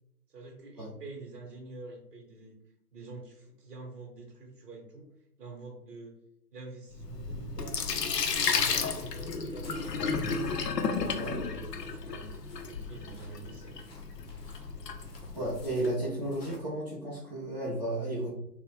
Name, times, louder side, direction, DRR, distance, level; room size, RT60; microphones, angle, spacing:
voice 1, 0.3-2.6 2.9-5.1 5.4-6.2 6.5-7.8 8.4-10.4 10.8-12.4 12.7-13.9, right 3 dB, 75° right, 0 dB, 0.9 m, -46 dB
Sink (filling or washing), 6.9-15.7, left 5 dB, 85° left, 0.6 m, -33 dB
sound 1, 8.1-16.6, left 1 dB, 40° left, 0.6 m, -53 dB
voice 2, 15.3-18.3, right 1 dB, 30° right, -8 dB, 0.5 m, -33 dB
3.2 x 2.0 x 3.0 m, 0.79 s
figure-of-eight pair, 135°, 48 cm